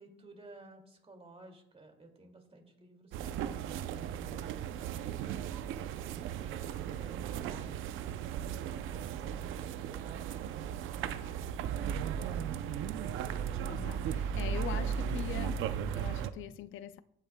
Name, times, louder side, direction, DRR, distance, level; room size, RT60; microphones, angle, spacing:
voice 1, 0.0-11.7 12.0-13.2, right 2 dB, 30° right, 2.2 m, -55 dB
sound 1, 3.1-16.3, right 8 dB, 90° right, 0.5 m, -36 dB
voice 2, 13.6-17.0, left 11 dB, 80° left, 0.4 m, -43 dB
15.5 x 8.8 x 2.2 m
cardioid pair, 90°, 20 cm